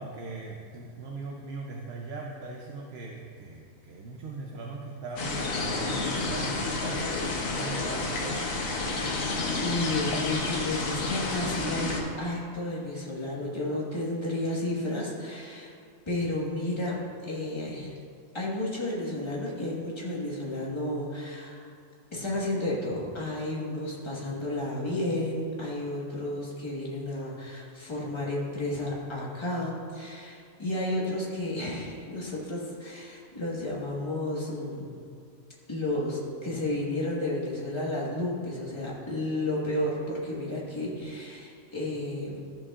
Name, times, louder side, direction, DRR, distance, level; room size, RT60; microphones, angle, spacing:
voice 1, 0.0-7.0 7.5-8.6, right 3 dB, 55° right, -1 dB, 0.8 m, -39 dB
sound 1, 5.2-12.0, left 3 dB, 80° left, 1.4 m, -30 dB
voice 2, 8.7-9.1 9.5-15.7 16.0-17.0 17.2-17.9 18.3-21.6 22.1-34.9 35.7-42.4, left 1 dB, 20° left, -5 dB, 1.4 m, -32 dB
13.5 x 5.5 x 2.4 m, 2.4 s
omnidirectional pair, 1.4 m